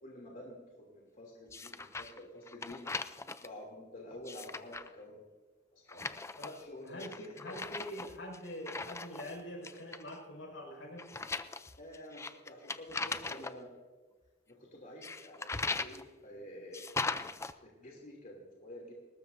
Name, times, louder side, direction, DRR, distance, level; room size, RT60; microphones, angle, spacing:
voice 1, 0.0-0.6 0.9-2.8 3.4-5.2 5.7-6.0 6.6-7.6 11.8-13.7 14.5-16.9 17.4-18.9, left 1 dB, 50° left, -2 dB, 2.9 m, -49 dB
sound 1, 1.5-2.2 2.5-3.5 4.1-4.9 5.9-6.6 7.0-9.4 9.6-10.2 11.0-13.5 15.0-16.0 16.7-17.5, left 3 dB, 15° left, 0.5 m, -39 dB
voice 2, 6.9-11.1, equal, 85° left, 0 dB, 5.9 m, -44 dB
20.5 x 19.0 x 2.7 m, 1.3 s
head